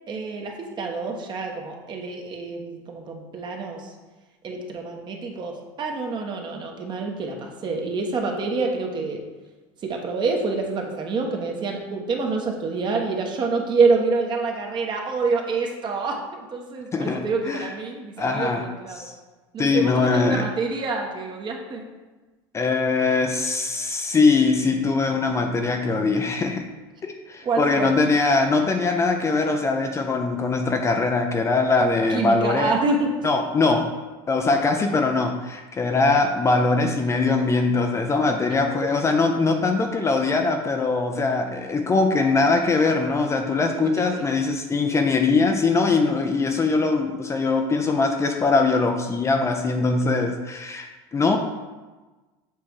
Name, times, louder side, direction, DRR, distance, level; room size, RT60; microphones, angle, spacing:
voice 1, 0.1-3.9 4.4-9.2 9.8-19.1 19.5-21.9 27.4-27.9 32.1-33.1 38.7-38.9 43.8-44.2, right 4 dB, 35° right, 1 dB, 1.2 m, -27 dB
voice 2, 18.2-18.6 19.0-19.1 19.6-20.4 22.5-26.6 27.0-32.7 33.2-33.9 34.3-51.4, left 3 dB, 20° left, 4 dB, 0.6 m, -22 dB
7.5 x 3.5 x 4.7 m, 1.2 s
supercardioid pair, 110°, 13 cm